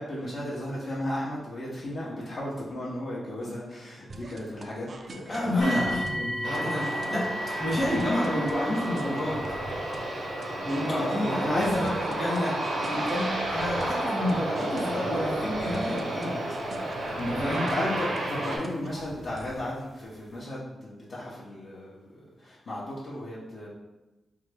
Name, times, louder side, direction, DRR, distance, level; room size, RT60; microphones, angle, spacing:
voice 1, 0.0-5.8 10.9-11.8 17.6-23.7, left 1 dB, 55° left, -7 dB, 0.7 m, -34 dB
sound 1, 4.1-19.6, right 2 dB, 50° right, 0.3 m, -45 dB
voice 2, 5.3-7.3 7.6-9.4 10.6-16.4 17.1-17.7, left 1 dB, 30° left, -6 dB, 1.0 m, -29 dB
sound 2, 5.6-18.5 19.3-19.4 20.0-20.1, equal, 75° left, 1.2 m, -38 dB
Aircraft, 6.4-18.6, right 1 dB, 90° right, 0.8 m, -31 dB
3.5 x 2.2 x 3.2 m, 1.0 s
cardioid pair, 105°, 0 cm